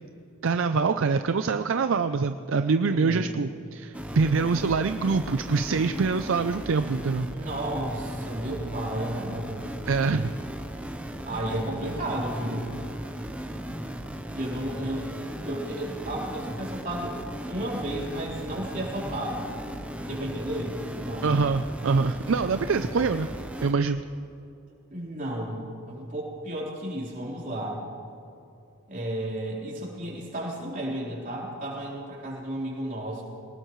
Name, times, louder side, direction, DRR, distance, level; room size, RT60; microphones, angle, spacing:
voice 1, 0.4-7.3 9.9-10.3 21.2-23.3 23.6-24.0, right 4 dB, 65° right, 9 dB, 0.4 m, -25 dB
voice 2, 2.9-3.3 7.3-9.7 11.2-12.7 14.3-15.1 15.4-17.2 17.5-19.5 20.1-21.4 22.8-22.9 24.9-27.8 28.9-33.2, right 1 dB, 40° right, -4 dB, 3.8 m, -33 dB
sound 1, 3.9-23.7, right 1 dB, 5° right, 0.8 m, -37 dB
22.5 x 19.0 x 3.2 m, 2.7 s
head